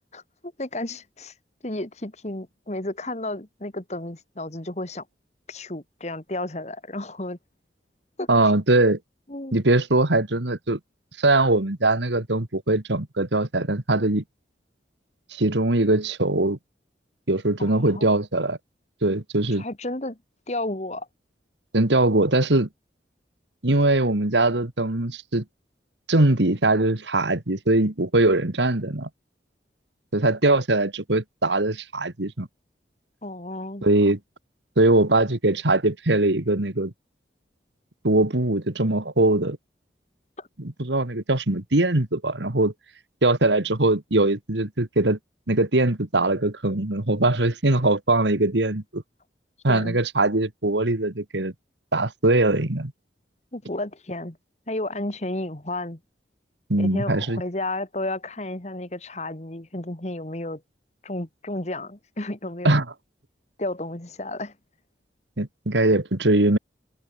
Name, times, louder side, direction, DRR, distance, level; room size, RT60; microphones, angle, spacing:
voice 1, 0.6-1.3 1.6-5.1 5.5-7.4 8.2-8.3 9.3-9.6 17.6-18.1 19.6-20.2 20.5-21.1 33.2-33.9 40.4-40.5 49.7-50.0 53.5-54.4 54.7-56.0 56.8-60.6 61.0-62.8 63.6-64.5, left 1 dB, 40° left, 1.9 m, -32 dB
voice 2, 8.3-9.0 9.5-10.8 11.2-14.2 15.3-16.6 17.3-18.6 19.0-19.6 21.7-22.7 23.6-25.4 26.1-29.1 30.1-32.5 33.8-34.2 34.8-36.9 38.0-39.6 40.6-42.7 43.2-45.2 45.5-49.0 49.6-51.5 51.9-52.9 56.7-57.4 62.6-62.9 65.4-66.6, right 2 dB, 80° right, 2.0 m, -21 dB
head